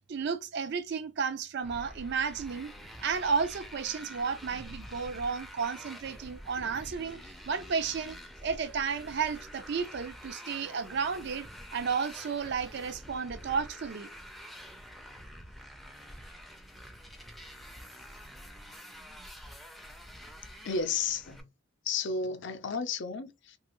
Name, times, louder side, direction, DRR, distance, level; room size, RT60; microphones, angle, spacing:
voice 1, 0.1-8.2 8.4-11.5 11.7-14.1, right 6 dB, 55° right, 0.5 m, -33 dB
Motorcycle, 1.6-21.4, equal, ahead, 0.5 m, -47 dB
voice 2, 20.6-21.5 21.8-23.6, left 5 dB, 60° left, 0.5 m, -32 dB
3.3 x 2.4 x 3.0 m
head